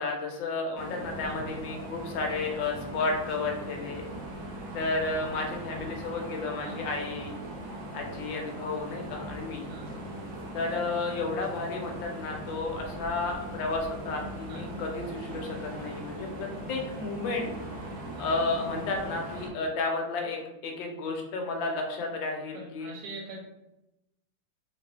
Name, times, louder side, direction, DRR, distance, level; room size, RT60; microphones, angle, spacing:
voice 1, 0.0-4.1 4.7-7.4 7.9-9.6 10.5-17.5 18.2-22.9, left 3 dB, 75° left, 2 dB, 1.4 m, -32 dB
sound 1, 0.7-19.5, right 1 dB, 60° right, 0.9 m, -40 dB
voice 2, 22.5-23.4, right 2 dB, 80° right, -1 dB, 1.7 m, -43 dB
3.4 x 2.9 x 3.3 m, 0.92 s
omnidirectional pair, 2.1 m